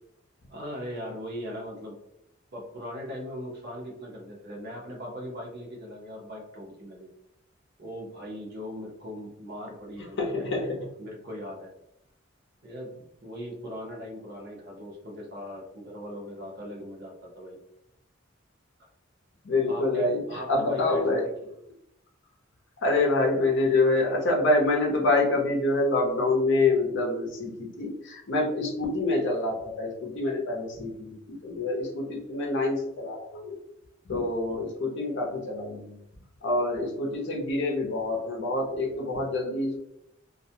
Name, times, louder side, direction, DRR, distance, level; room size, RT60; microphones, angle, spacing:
voice 1, 0.5-2.0 2.5-7.1 7.8-10.6 11.0-11.7 12.6-17.6 18.8-18.9 19.7-21.3, equal, 55° right, -1 dB, 0.8 m, -39 dB
voice 2, 10.2-10.8 19.4-21.2 22.8-33.6 34.1-36.0 36.4-39.8, left 2 dB, 65° left, 0 dB, 0.6 m, -26 dB
2.4 x 2.1 x 2.7 m, 0.77 s
head